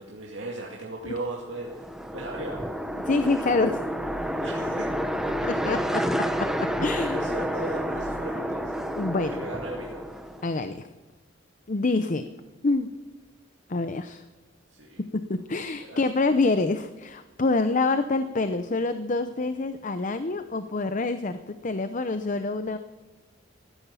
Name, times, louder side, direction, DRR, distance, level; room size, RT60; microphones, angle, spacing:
voice 1, 0.0-1.7 2.1-2.6 4.4-4.9 5.4-5.5 5.9-6.0 6.9-8.8 9.3-10.1 14.7-15.0 15.8-16.0, right 2 dB, 70° right, -2 dB, 2.2 m, -37 dB
sound 1, 1.5-10.6, equal, ahead, 0.9 m, -30 dB
voice 2, 3.1-3.8 5.4-6.0 6.4-6.5 6.8-7.2 9.0-9.5 10.4-10.9 11.7-12.2 12.6-12.9 13.7-14.2 15.0-22.8, left 3 dB, 40° left, 10 dB, 0.7 m, -26 dB
16.0 x 12.5 x 6.9 m, 1.3 s
head